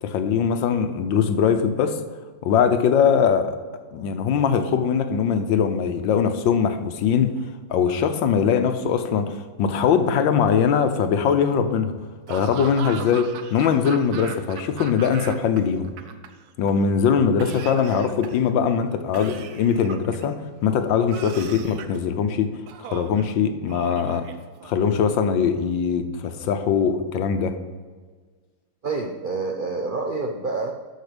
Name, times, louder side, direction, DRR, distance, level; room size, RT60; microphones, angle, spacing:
voice 1, 0.0-2.0 2.4-3.6 3.9-7.3 7.7-11.9 12.3-15.9 16.6-20.4 20.6-22.5 22.8-24.2 24.6-27.5, left 7 dB, 90° left, 8 dB, 1.6 m, -21 dB
Laughter / Cough, 12.3-15.6 15.8-16.7 17.4-18.5 19.1-20.3 21.1-22.0 22.7-23.2 23.7-24.9, right 7 dB, 65° right, 1.2 m, -38 dB
voice 2, 28.8-30.7, right 3 dB, 90° right, 3 dB, 0.4 m, -27 dB
13.0 x 5.3 x 5.1 m, 1.5 s
omnidirectional pair, 2.0 m